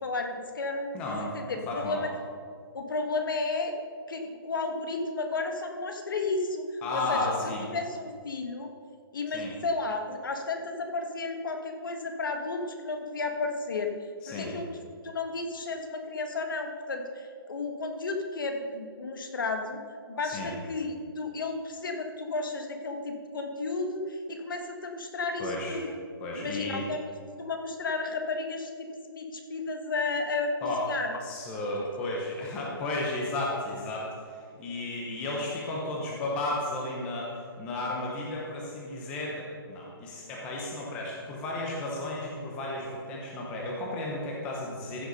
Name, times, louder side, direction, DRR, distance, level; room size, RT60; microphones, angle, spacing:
voice 1, 0.0-2.1 2.7-3.7 4.1-7.3 7.7-8.7 9.1-13.9 14.3-14.7 15.0-19.8 20.1-25.9 26.3-27.0 27.4-31.2, left 3 dB, 60° left, 4 dB, 1.5 m, -33 dB
voice 2, 0.9-1.3 1.7-2.0 6.8-7.7 9.3-9.5 14.2-14.5 20.2-20.5 25.4-25.8 26.2-26.8 30.6-30.8 31.2-45.1, left 2 dB, 10° left, -3 dB, 0.8 m, -33 dB
15.0 x 6.6 x 5.4 m, 2.1 s
hypercardioid pair, 180°, 13 cm